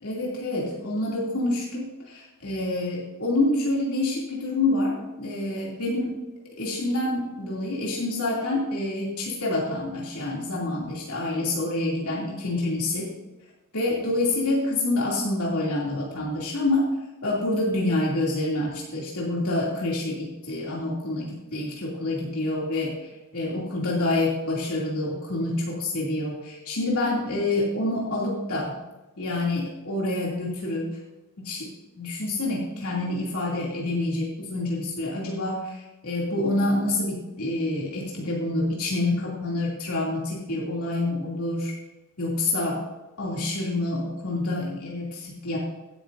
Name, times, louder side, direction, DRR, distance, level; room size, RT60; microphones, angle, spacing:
voice 1, 0.0-6.1 6.5-13.1 13.7-16.9 17.2-23.0 23.3-28.7 29.2-30.9 31.4-31.7 32.0-41.7 42.2-42.8 43.2-45.6, left 2 dB, 85° left, -5 dB, 2.7 m, -27 dB
16.0 x 9.7 x 2.6 m, 1.1 s
head